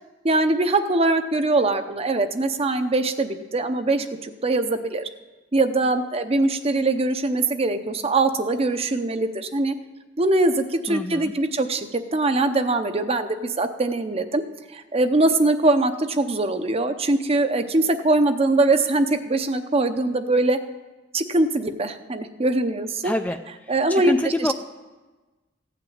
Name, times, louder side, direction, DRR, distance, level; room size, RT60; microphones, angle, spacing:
voice 1, 0.2-5.1 5.5-9.7 10.2-14.4 14.7-20.6 21.1-23.1 23.7-24.1 24.4-24.5, right 2 dB, 30° right, 9 dB, 0.7 m, -22 dB
voice 2, 10.9-11.3 23.0-24.5, left 1 dB, 10° left, 6 dB, 0.4 m, -27 dB
15.5 x 6.0 x 8.7 m, 1.2 s
head